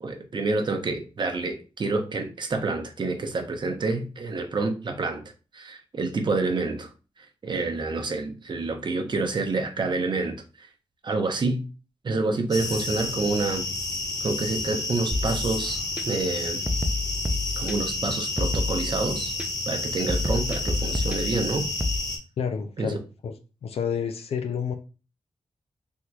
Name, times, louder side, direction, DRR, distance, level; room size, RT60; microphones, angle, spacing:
voice 1, 0.0-5.2 5.5-6.9 7.4-10.7 11.0-11.7 12.0-13.6 14.2-16.6 17.6-19.3 19.7-21.7 22.8-22.9, right 3 dB, 50° right, 6 dB, 0.7 m, -28 dB
sound 1, 12.5-22.2, left 2 dB, 35° left, 0.9 m, -30 dB
sound 2, 15.1-16.0 16.7-18.0 18.4-19.5 20.1-22.0, left 2 dB, 10° right, 0.4 m, -29 dB
voice 2, 22.4-23.3 23.6-24.7, left 7 dB, 80° left, 7 dB, 0.4 m, -29 dB
3.4 x 2.9 x 2.3 m, 0.33 s
wide cardioid pair, 90°, 10 cm